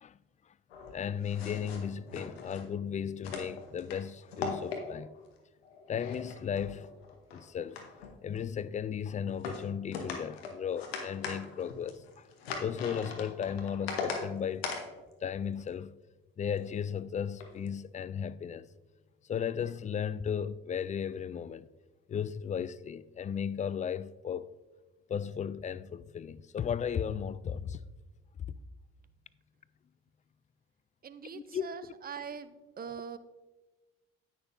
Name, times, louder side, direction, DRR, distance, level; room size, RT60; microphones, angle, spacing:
sound 1, 0.7-2.6 3.2-4.0 4.3-5.2 5.6-7.4 7.7-8.4 9.3-9.6 9.9-14.2 14.6-14.8 16.6-16.8 17.4-17.7, left 5 dB, 85° left, 1.1 m, -40 dB
voice 1, 0.9-5.1 5.9-6.9 7.3-7.8 8.2-12.3 12.6-14.7 15.2-16.0 16.4-18.7 19.3-21.7 22.1-24.5 25.1-27.8 28.5-28.6 31.3-31.7, left 8 dB, 25° left, 0.4 m, -35 dB
voice 2, 31.0-33.2, right 7 dB, 30° right, 0.7 m, -42 dB
9.9 x 9.0 x 2.6 m
hypercardioid pair, 50°, 30 cm